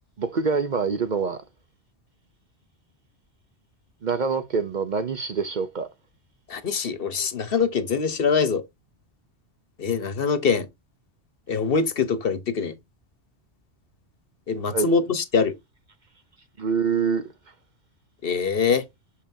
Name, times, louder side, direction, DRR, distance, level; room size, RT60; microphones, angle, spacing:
voice 1, 0.2-1.4 4.0-5.9 14.7-14.9 16.6-17.3, right 5 dB, 50° right, 0.7 m, -25 dB
voice 2, 6.5-8.6 9.8-10.7 11.5-12.7 14.5-15.5 18.2-18.9, left 5 dB, 55° left, 1.1 m, -23 dB
6.5 x 5.6 x 2.7 m
omnidirectional pair, 1.2 m